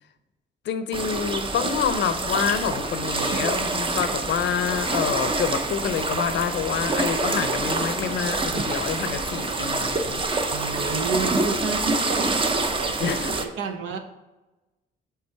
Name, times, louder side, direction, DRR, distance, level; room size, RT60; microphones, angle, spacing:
voice 1, 0.6-10.2 13.0-13.3, left 7 dB, 65° left, 10 dB, 0.6 m, -27 dB
sound 1, 0.9-13.4, right 2 dB, 25° right, 0.6 m, -26 dB
voice 2, 10.5-14.0, right 5 dB, 75° right, 5 dB, 0.8 m, -30 dB
5.4 x 3.8 x 4.6 m, 1.1 s
cardioid pair, 90°, 20 cm